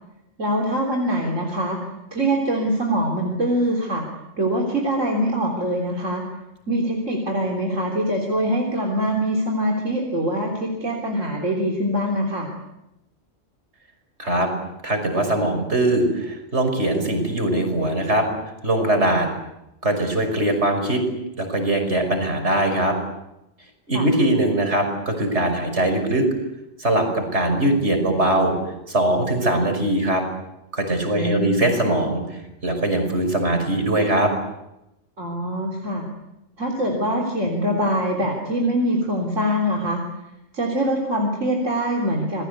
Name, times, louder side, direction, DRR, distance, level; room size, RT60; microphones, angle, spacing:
voice 1, 0.4-1.8 2.1-4.1 4.4-6.2 6.7-12.5 23.9-24.1 31.1-31.7 35.2-36.1 36.6-40.0 40.5-42.5, equal, 75° right, 1 dB, 3.9 m, -23 dB
voice 2, 14.2-14.5 14.8-18.3 18.6-19.3 19.8-21.0 21.4-23.0 23.9-26.2 26.8-28.6 28.9-30.2 30.7-32.2 32.6-34.3, right 1 dB, 60° right, 5 dB, 6.1 m, -21 dB
28.0 x 21.5 x 8.3 m, 0.90 s
omnidirectional pair, 1.3 m